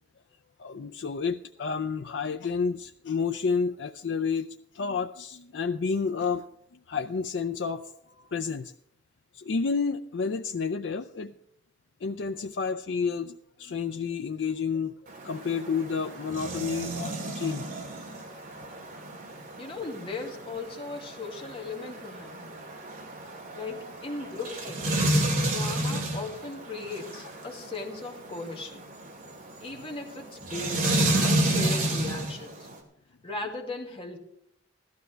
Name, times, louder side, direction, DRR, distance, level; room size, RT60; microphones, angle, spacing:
voice 1, 0.6-4.5 4.7-6.4 6.9-7.9 8.3-8.7 9.3-11.3 12.0-14.9 15.2-17.7, left 5 dB, 75° left, 7 dB, 0.5 m, -30 dB
sound 1, 15.1-32.8, right 1 dB, 50° right, 2.4 m, -31 dB
voice 2, 19.6-22.6 23.5-25.1 25.5-28.8 29.6-32.7 33.2-34.2, left 3 dB, 30° left, 0 dB, 2.2 m, -38 dB
16.5 x 12.5 x 3.4 m, 0.73 s
head